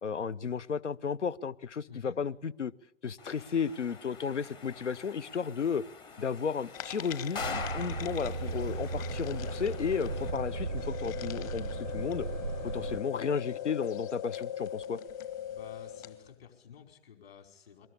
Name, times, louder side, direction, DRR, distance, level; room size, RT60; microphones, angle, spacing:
voice 1, 0.0-2.7 3.0-5.8 6.2-12.3 12.6-15.0, left 6 dB, 70° left, 21 dB, 0.9 m, -33 dB
sound 1, 3.2-10.3, left 5 dB, 10° left, 0.9 m, -44 dB
sound 2, 6.7-16.3, left 12 dB, 30° left, 1.3 m, -41 dB
Truck, 7.4-13.0, right 4 dB, 90° right, 0.9 m, -36 dB
voice 2, 15.5-17.9, left 8 dB, 55° left, 5 dB, 4.8 m, -51 dB
23.0 x 20.5 x 9.9 m, 0.78 s
figure-of-eight pair, 120°, 37 cm